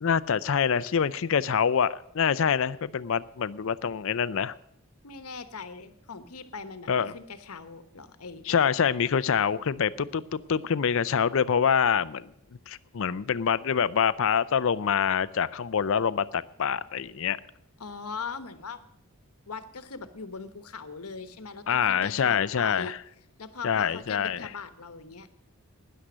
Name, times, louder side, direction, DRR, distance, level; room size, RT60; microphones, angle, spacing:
voice 1, 0.0-4.5 6.9-7.1 8.5-12.3 12.7-17.4 21.7-23.0 23.6-24.5, left 7 dB, 60° left, 16 dB, 0.5 m, -25 dB
voice 2, 5.0-8.4 17.8-18.8 19.5-22.9 23.4-25.3, left 5 dB, 80° left, 11 dB, 1.1 m, -40 dB
13.0 x 10.0 x 6.2 m, 0.74 s
head